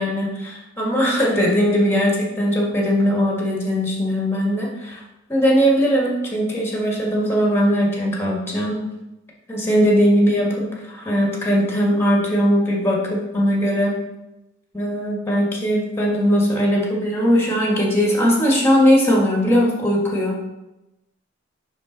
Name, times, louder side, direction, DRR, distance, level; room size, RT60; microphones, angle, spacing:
voice 1, 0.0-5.0 5.3-8.8 9.5-13.9 14.7-20.4, equal, 10° left, -2 dB, 1.6 m, -19 dB
10.5 x 3.8 x 3.9 m, 0.96 s
head